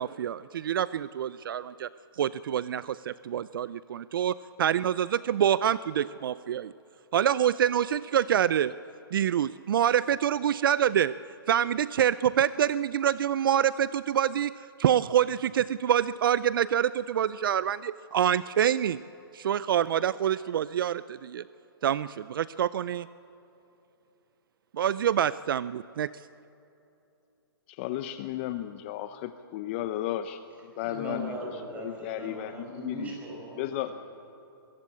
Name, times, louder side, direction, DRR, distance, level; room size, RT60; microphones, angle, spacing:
voice 1, 0.0-1.9 2.2-6.7 7.1-8.7 9.1-11.1 11.5-14.5 14.8-19.0 19.3-21.4 21.8-23.1 24.7-26.1, right 10 dB, 60° right, 17 dB, 0.4 m, -26 dB
voice 2, 27.8-30.4 30.8-31.3 31.8-33.0 33.6-33.9, left 13 dB, 30° left, 11 dB, 0.6 m, -33 dB
voice 3, 30.7-33.9, right 1 dB, 10° right, -2 dB, 5.4 m, -39 dB
23.5 x 15.5 x 8.6 m, 2.9 s
hypercardioid pair, 155°, 13 cm